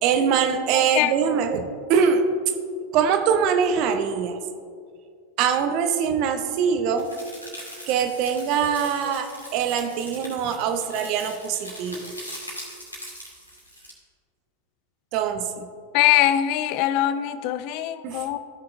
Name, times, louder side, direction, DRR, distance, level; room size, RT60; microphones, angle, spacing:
voice 1, 0.0-1.6 1.9-2.2 2.9-4.4 5.4-7.1 7.9-12.1 15.1-15.7 18.0-18.3, right 7 dB, 40° right, 6 dB, 0.8 m, -23 dB
sound 1, 7.0-13.9, equal, 85° left, 2.2 m, -41 dB
voice 2, 15.9-18.4, left 13 dB, 45° left, 14 dB, 0.4 m, -22 dB
16.0 x 5.7 x 2.6 m, 2.2 s
figure-of-eight pair, 90°, 0 cm